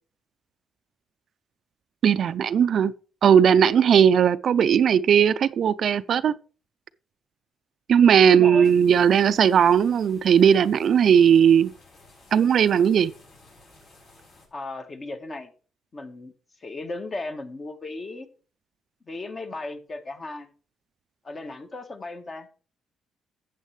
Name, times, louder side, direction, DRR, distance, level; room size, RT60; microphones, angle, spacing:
voice 1, 2.0-2.9 3.2-6.3 7.9-11.7 12.3-13.1, right 8 dB, 60° right, 0.4 m, -18 dB
voice 2, 8.3-8.8 14.5-15.5 15.9-16.3 16.6-18.3 19.1-20.5 21.2-22.5, left 2 dB, 35° left, 1.4 m, -35 dB
sound 1, 8.6-14.5, left 2 dB, 65° left, 5.6 m, -54 dB
12.0 x 8.2 x 3.2 m
cardioid pair, 90°, 0 cm